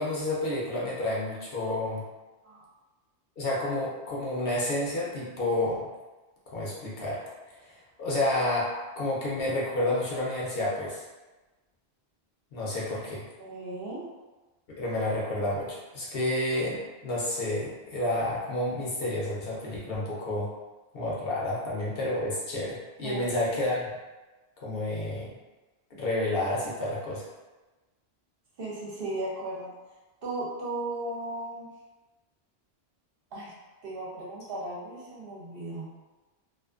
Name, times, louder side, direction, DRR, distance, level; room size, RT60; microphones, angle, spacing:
voice 1, 0.0-2.0 3.4-5.9 6.5-7.2 7.6-11.0 12.5-13.2 14.7-20.5 20.9-24.0 24.6-25.3 26.0-27.2, left 1 dB, 65° left, -5 dB, 0.8 m, -30 dB
voice 2, 13.4-14.0 23.0-23.3 28.6-29.7 30.2-31.7 33.3-33.5 33.8-35.9, right 2 dB, 65° right, -4 dB, 0.8 m, -36 dB
2.5 x 2.4 x 2.3 m, 1.2 s
omnidirectional pair, 1.1 m